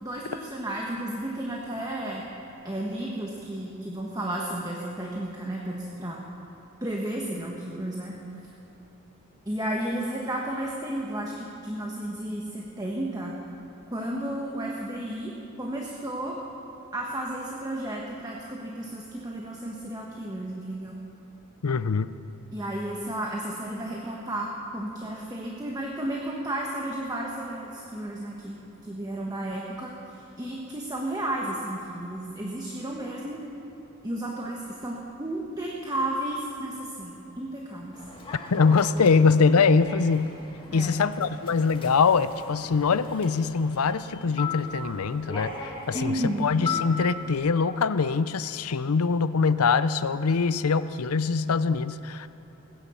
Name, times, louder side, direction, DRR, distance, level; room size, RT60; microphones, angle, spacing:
voice 1, 0.0-2.2 2.6-6.2 6.8-8.1 9.4-13.4 13.9-15.3 15.6-16.4 16.9-20.9 22.5-28.6 28.8-33.4 34.0-37.9 40.7-41.0 45.9-46.5, right 1 dB, 20° right, -2 dB, 1.3 m, -33 dB
voice 2, 21.6-22.1 38.5-40.3 40.7-52.3, left 5 dB, 90° left, 14 dB, 0.6 m, -23 dB
Human voice / Subway metro underground, 37.9-47.4, left 4 dB, 25° left, 2.1 m, -38 dB
19.5 x 10.0 x 7.1 m, 2.9 s
head